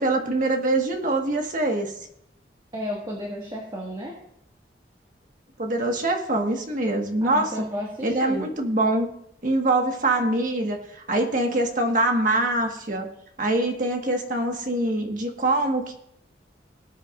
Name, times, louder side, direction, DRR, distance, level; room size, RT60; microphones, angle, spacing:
voice 1, 0.0-1.9 5.6-7.5 8.0-9.1 9.4-13.1 13.4-15.9, right 2 dB, 45° right, 2 dB, 1.6 m, -24 dB
voice 2, 2.7-4.1 7.2-8.5, equal, 25° right, -2 dB, 1.8 m, -32 dB
19.0 x 9.5 x 2.6 m, 0.75 s
head